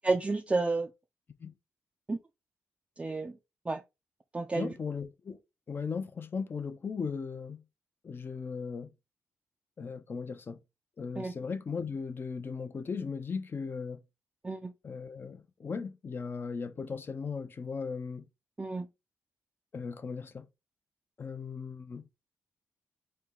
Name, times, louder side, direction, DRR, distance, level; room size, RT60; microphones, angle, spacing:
voice 1, 0.0-0.9 2.1-2.2 3.0-3.3 3.7-3.8 4.3-4.7 11.2-11.3 14.4-14.7 18.6-18.9, right 3 dB, 20° right, 0.4 m, -30 dB
voice 2, 4.5-5.4 5.7-7.6 8.0-8.9 9.8-10.6 11.0-14.0 14.8-18.3 19.7-20.4 21.2-22.1, left 5 dB, 40° left, 0.5 m, -37 dB
4.3 x 2.1 x 3.7 m
cardioid pair, 85°, 5 cm